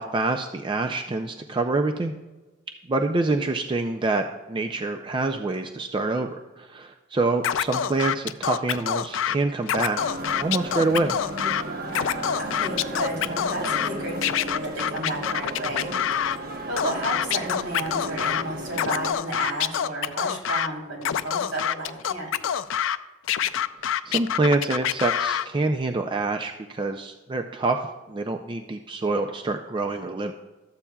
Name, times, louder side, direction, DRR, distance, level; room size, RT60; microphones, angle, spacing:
voice 1, 0.0-2.1 2.9-11.2 24.1-27.8 28.1-30.3, right 3 dB, 25° right, 5 dB, 0.4 m, -26 dB
Scratching (performance technique), 7.4-9.3 9.6-11.6 11.9-13.9 14.2-16.4 16.8-18.4 18.7-20.7 21.0-23.0 23.3-25.5, left 9 dB, 70° left, 0.4 m, -26 dB
sound 1, 10.0-19.1, right 1 dB, 50° right, 0.9 m, -34 dB
voice 2, 12.4-15.9 16.2-16.4 16.7-22.3, right 1 dB, 75° right, -3 dB, 3.3 m, -32 dB
13.0 x 8.4 x 2.3 m, 1.2 s
head